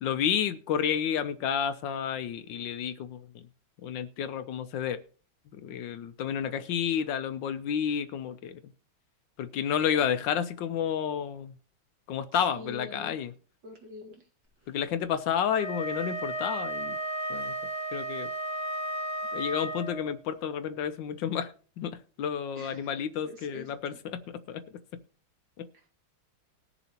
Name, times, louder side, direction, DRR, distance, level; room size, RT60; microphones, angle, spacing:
voice 1, 0.0-3.2 3.8-5.0 5.6-8.6 9.4-11.5 12.1-13.3 14.7-17.0 17.3-17.5 17.9-18.3 19.3-24.2 24.5-24.6 25.6-25.7, left 8 dB, 70° left, 11 dB, 1.2 m, -30 dB
voice 2, 12.3-13.2 13.6-14.2 22.5-22.9 23.2-24.0, left 2 dB, 60° right, 2 dB, 2.5 m, -46 dB
Wind instrument woodwind instrument, 15.5-20.1, right 1 dB, 15° right, 1.6 m, -34 dB
20.0 x 6.9 x 2.9 m, 0.39 s
omnidirectional pair, 2.2 m